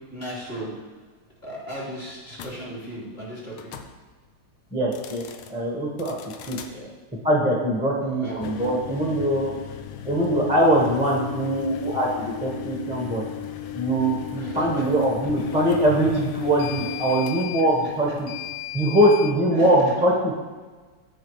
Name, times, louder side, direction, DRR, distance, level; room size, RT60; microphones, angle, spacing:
voice 1, 0.1-0.7 1.4-3.7 6.7-6.9 8.0-8.4 14.4-14.8 15.2-15.3 18.1-18.2 19.5-19.9, equal, 20° left, -7 dB, 2.5 m, -36 dB
sound 1, 2.3-2.5 3.5-3.9 4.8-5.5 6.0-6.7 8.3-19.3, left 10 dB, 85° left, 1.6 m, -35 dB
voice 2, 4.7-5.2 5.5-6.1 6.5-6.6 7.2-9.5 10.0-13.2 13.7-18.3 18.7-20.3, right 1 dB, 5° right, -3 dB, 0.9 m, -22 dB
14.5 x 4.9 x 3.2 m, 1.4 s
omnidirectional pair, 2.3 m